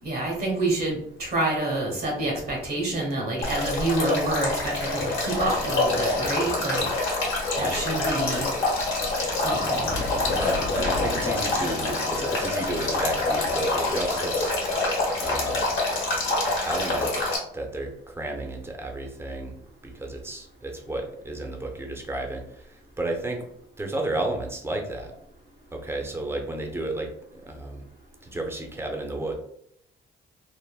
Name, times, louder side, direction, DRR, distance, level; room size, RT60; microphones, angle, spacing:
voice 1, 0.0-7.1 7.5-8.5 9.4-9.9, right 2 dB, 50° right, 0 dB, 0.9 m, -28 dB
Male speech man speaking / Stream / Trickle dribble, 3.4-17.4, left 2 dB, 75° left, 1.0 m, -26 dB
sound 1, 7.9-14.1, left 2 dB, 60° left, 0.7 m, -36 dB
voice 2, 10.3-14.6 15.2-15.6 16.7-17.1 17.5-23.4 23.8-25.1 25.7-27.8 28.2-29.3, right 2 dB, 10° right, 2 dB, 0.6 m, -32 dB
3.4 x 2.1 x 2.2 m, 0.73 s
cardioid pair, 90°, 20 cm